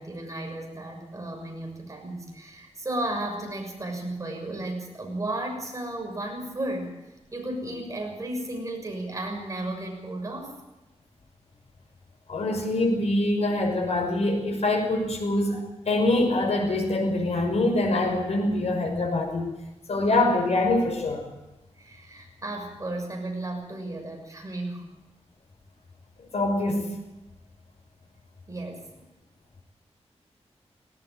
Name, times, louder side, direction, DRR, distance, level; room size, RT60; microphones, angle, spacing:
voice 1, 0.0-7.0 7.3-10.5 21.8-24.8 28.5-28.9, right 1 dB, 30° right, 2 dB, 6.6 m, -34 dB
voice 2, 12.3-19.5 19.9-21.3 26.2-26.9, left 2 dB, 70° left, 2 dB, 6.0 m, -24 dB
18.5 x 18.5 x 8.0 m, 0.98 s
wide cardioid pair, 110°, 11 cm